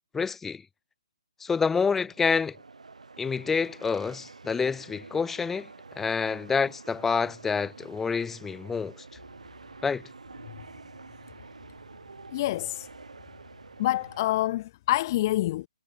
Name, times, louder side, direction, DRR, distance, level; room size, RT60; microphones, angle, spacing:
voice 1, 0.1-0.6 1.4-2.6 3.2-5.7 6.0-9.0 9.8-10.0, left 5 dB, 5° left, 1.1 m, -27 dB
sound 1, 1.7-14.4, right 4 dB, 85° right, 5.7 m, -48 dB
voice 2, 12.3-12.9 13.8-15.7, left 15 dB, 35° left, 1.6 m, -27 dB
hypercardioid pair, 150°, 4 cm